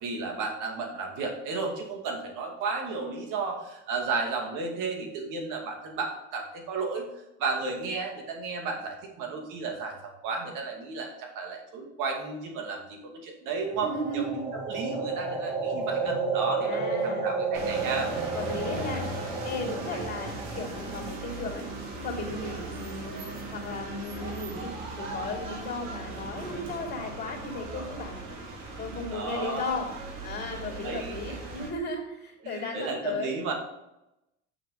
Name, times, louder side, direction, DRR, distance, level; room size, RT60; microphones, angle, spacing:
voice 1, 0.0-14.2 14.5-18.1 29.1-29.8 30.8-31.4 32.4-33.5, right 4 dB, 65° right, 2 dB, 2.4 m, -33 dB
sound 1, 13.6-21.7, right 4 dB, 15° right, 3.2 m, -32 dB
voice 2, 13.7-14.5 16.6-17.3 18.3-19.1 19.4-21.7 22.0-28.2 28.8-29.9 30.2-33.4, left 2 dB, 30° left, 1 dB, 3.2 m, -35 dB
sound 2, 17.5-31.7, right 2 dB, 90° right, 2.3 m, -38 dB
6.8 x 6.1 x 5.8 m, 0.91 s
supercardioid pair, 95°, 35 cm